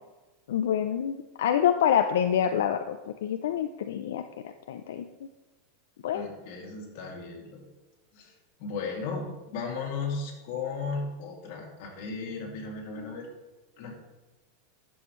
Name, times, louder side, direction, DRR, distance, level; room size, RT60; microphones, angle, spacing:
voice 1, 0.5-5.0 6.0-6.3, left 9 dB, 85° left, 7 dB, 0.4 m, -27 dB
voice 2, 6.1-7.6 8.1-8.3 8.6-13.3 13.8-13.9, left 4 dB, 55° left, -1 dB, 2.4 m, -35 dB
11.0 x 7.1 x 3.1 m, 1.1 s
supercardioid pair, 150°, 0 cm